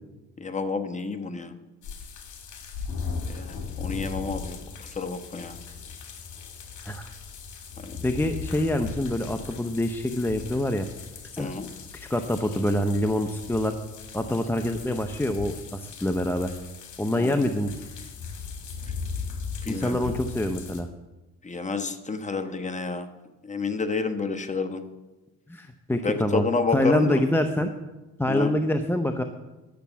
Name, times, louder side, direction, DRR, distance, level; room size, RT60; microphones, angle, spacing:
voice 1, 0.4-1.5 3.3-4.6 4.8-5.5 7.8-8.0 11.4-11.7 17.1-17.4 19.6-20.1 21.4-23.1 23.4-24.8 26.0-27.2 28.3-28.6, left 4 dB, 25° left, 7 dB, 1.2 m, -30 dB
sound 1, 1.8-20.8, left 5 dB, 75° left, 2.0 m, -38 dB
voice 2, 8.0-10.9 11.3-11.5 11.9-13.7 14.1-16.5 17.0-17.7 19.7-20.9 25.5-27.7 28.2-29.2, left 1 dB, 5° left, 7 dB, 0.7 m, -26 dB
10.5 x 6.7 x 7.4 m, 1.1 s
cardioid pair, 90°, 30 cm